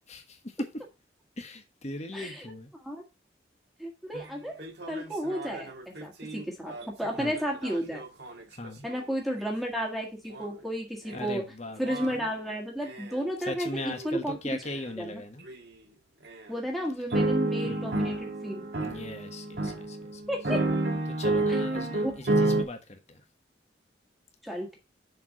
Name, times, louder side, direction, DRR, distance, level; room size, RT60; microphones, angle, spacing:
voice 1, 0.1-0.7 1.4-2.7 7.2-7.4 8.5-8.8 11.1-11.8 13.5-15.5 17.6-17.9 18.8-20.2 21.1-23.2, left 1 dB, 35° left, 5 dB, 1.3 m, -39 dB
voice 2, 2.1-2.5 2.8-3.0 3.8-4.5 4.9-8.0 8.8-11.4 11.8-14.6 15.0-15.2 16.5-18.6 20.3-20.6 21.5-21.6 22.0-22.1 24.4-24.8, equal, ahead, -1 dB, 1.7 m, -33 dB
sound 1, 4.1-4.2 4.6-9.0 10.3-10.5 11.1-11.3 11.8-12.2 12.9-13.2 13.8-14.1 14.6-14.8 15.5-15.6 16.3-16.4 17.1-22.6, right 2 dB, 60° right, 1.5 m, -30 dB
7.1 x 4.6 x 6.3 m, 0.27 s
head